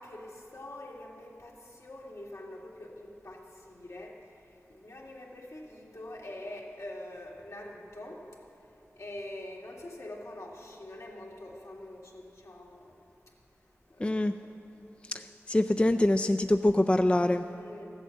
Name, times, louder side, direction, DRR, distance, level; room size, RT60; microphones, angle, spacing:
voice 1, 0.0-4.1 4.7-8.2 9.0-12.9 14.0-14.1 17.5-17.8, left 1 dB, 70° left, -2 dB, 2.1 m, -44 dB
voice 2, 14.0-14.3 15.1-17.4, left 1 dB, 20° left, 8 dB, 0.4 m, -25 dB
14.5 x 8.1 x 7.5 m, 2.9 s
wide cardioid pair, 55°, 5 cm